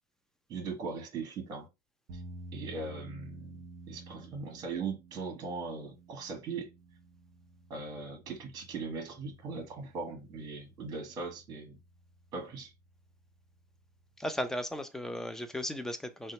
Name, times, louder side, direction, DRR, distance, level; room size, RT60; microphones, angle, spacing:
voice 1, 0.5-1.7 2.1-2.2 2.5-6.7 7.7-11.8 12.3-12.7, right 4 dB, 45° right, 1.3 m, -39 dB
sound 1, 2.1-14.6, right 1 dB, 60° right, 0.8 m, -52 dB
voice 2, 14.2-16.3, equal, 5° left, 0.6 m, -36 dB
2.7 x 2.2 x 4.0 m
supercardioid pair, 100°, 10 cm